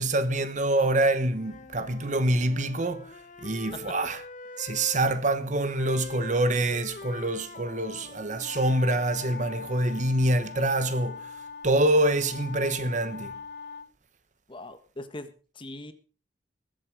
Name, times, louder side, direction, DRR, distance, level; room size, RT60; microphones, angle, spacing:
voice 1, 0.0-4.2 4.6-11.3 11.6-13.3, right 1 dB, 45° right, 1.1 m, -26 dB
Wind instrument woodwind instrument, 1.1-5.1 5.7-9.3, left 3 dB, 45° left, 1.0 m, -44 dB
sound 1, 8.4-13.9, left 5 dB, 65° left, 1.2 m, -41 dB
voice 2, 14.5-15.9, left 2 dB, 30° left, 1.4 m, -41 dB
21.0 x 8.0 x 4.9 m
head